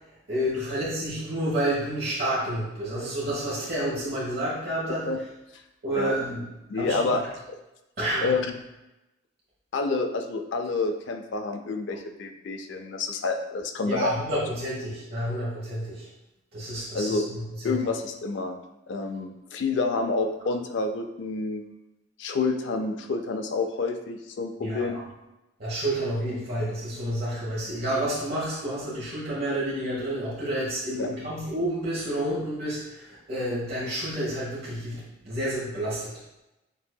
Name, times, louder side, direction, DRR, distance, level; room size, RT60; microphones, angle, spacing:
voice 1, 0.3-5.1 5.8-6.4 6.7-7.1 8.0-8.4 13.8-16.1 16.5-17.8 24.6-24.9 25.6-36.1, right 1 dB, 50° right, -7 dB, 1.2 m, -29 dB
voice 2, 4.9-5.2 5.9-6.1 6.7-7.6 8.2-8.6 9.7-14.4 16.9-17.2 17.6-18.6 18.9-21.6 22.2-25.0 31.0-31.1, left 3 dB, 65° left, 6 dB, 0.4 m, -28 dB
7.0 x 2.7 x 2.2 m, 0.95 s
head